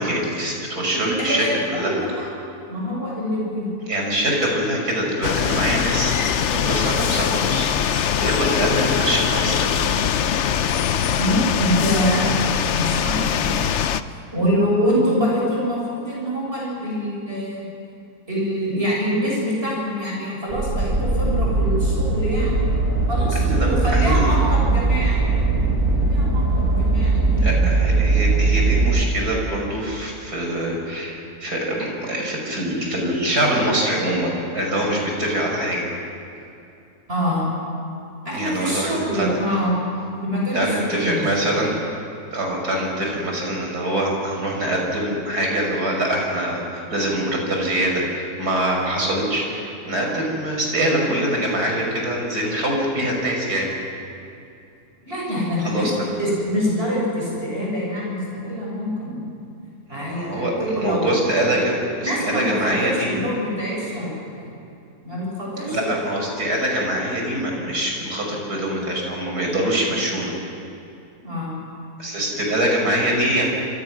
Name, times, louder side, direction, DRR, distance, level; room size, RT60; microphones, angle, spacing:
voice 1, 0.0-2.0 3.9-10.0 23.5-24.3 27.4-35.9 38.3-39.4 40.5-41.7 42.3-53.7 55.6-56.1 59.9-60.5 60.8-61.7 62.0-63.1 65.7-70.3 72.0-73.4, right 1 dB, 80° right, 0 dB, 6.3 m, -24 dB
voice 2, 0.9-2.3 2.7-3.7 11.2-13.6 14.3-17.7 18.3-22.6 23.1-25.2 25.9-27.6 37.1-37.5 38.2-39.7 40.2-41.5 55.1-59.3 59.9-61.2 61.5-61.6 62.0-64.4 65.0-66.0 71.2-71.5, equal, 35° right, -4 dB, 7.3 m, -25 dB
sound 1, 5.2-14.0, left 8 dB, 55° left, 0.9 m, -22 dB
sound 2, 20.5-29.0, right 3 dB, 55° right, 2.6 m, -20 dB
27.5 x 27.0 x 6.3 m, 2.6 s
omnidirectional pair, 1.7 m